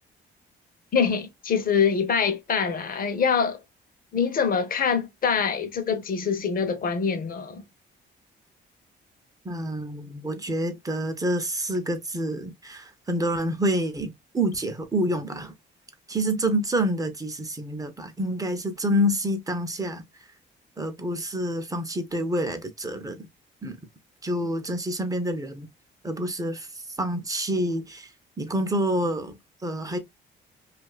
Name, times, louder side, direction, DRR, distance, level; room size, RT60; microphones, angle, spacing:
voice 1, 0.9-3.6 4.1-7.6, left 6 dB, 45° left, 0.7 m, -24 dB
voice 2, 9.4-15.5 16.1-20.0 20.8-23.3 23.6-23.8 24.2-25.7 26.0-26.7 27.0-28.1 28.4-30.0, equal, 15° right, 0.6 m, -27 dB
2.6 x 2.4 x 2.3 m
cardioid pair, 90°, 20 cm